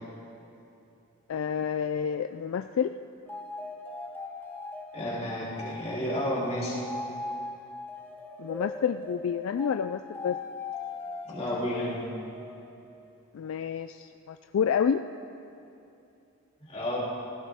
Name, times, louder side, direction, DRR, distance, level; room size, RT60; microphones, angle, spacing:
voice 1, 1.3-2.9 8.4-10.4 13.3-15.0, left 7 dB, 65° left, 9 dB, 0.3 m, -29 dB
sound 1, 3.3-13.0, left 3 dB, 10° left, 0.9 m, -40 dB
voice 2, 4.9-6.8 11.3-12.0 16.6-17.0, equal, 30° left, -6 dB, 3.0 m, -31 dB
16.0 x 16.0 x 3.5 m, 2.8 s
head